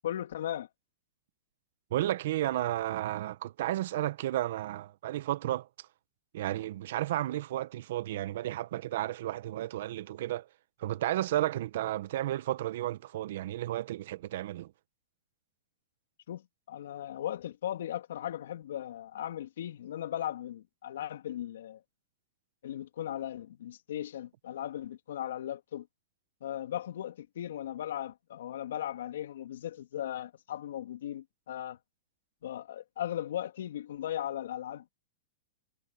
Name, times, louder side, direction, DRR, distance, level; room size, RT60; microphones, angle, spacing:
voice 1, 0.0-0.7 16.3-21.8 22.6-25.9 26.4-31.8 32.4-34.9, left 11 dB, 75° left, 3.1 m, -37 dB
voice 2, 1.9-5.7 6.3-10.5 10.8-14.7, right 14 dB, 65° right, 1.4 m, -32 dB
hypercardioid pair, 125°, 0 cm